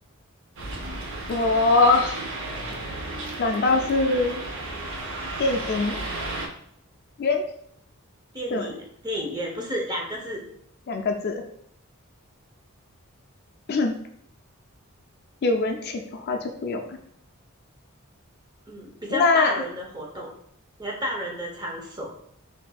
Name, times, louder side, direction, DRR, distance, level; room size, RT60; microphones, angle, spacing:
sound 1, 0.6-6.5, right 2 dB, 60° right, 0.7 m, -33 dB
voice 1, 1.3-2.1 3.4-4.3 5.4-6.0 7.2-7.4 8.5-8.7 10.9-11.3 13.7-13.9 15.4-17.0 19.1-19.5, left 3 dB, 45° left, 4 dB, 0.4 m, -22 dB
voice 2, 8.3-10.4 18.7-20.3 20.8-22.1, equal, 20° right, -1 dB, 0.7 m, -31 dB
6.1 x 2.6 x 2.3 m, 0.70 s
head